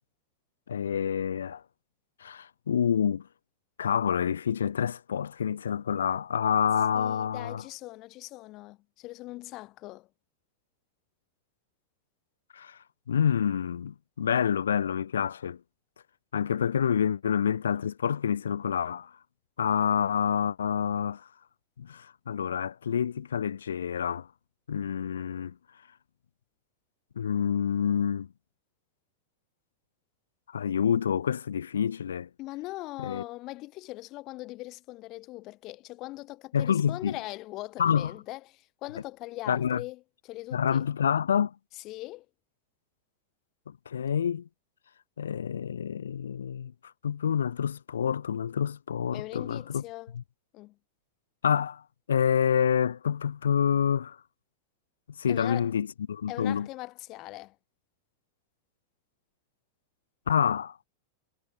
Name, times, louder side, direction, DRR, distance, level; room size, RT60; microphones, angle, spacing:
voice 1, 0.7-1.6 2.2-3.3 3.8-7.6 12.5-12.8 13.1-15.6 16.3-19.1 19.6-21.3 21.8-24.3 24.7-25.5 27.2-28.3 30.5-32.3 33.0-33.2 36.5-37.2 37.8-38.1 39.5-39.8 40.5-41.5 43.7-44.5 45.2-46.7 47.0-49.8 50.1-50.2 51.4-51.8 52.1-54.2 55.2-56.7 60.3-60.8, left 8 dB, 65° left, 0.3 m, -27 dB
voice 2, 6.9-10.1 32.4-40.9 41.8-42.2 49.1-50.1 50.5-50.7 55.3-55.7 56.3-57.5, left 19 dB, 40° left, 1.3 m, -41 dB
figure-of-eight pair, 90°, 0 cm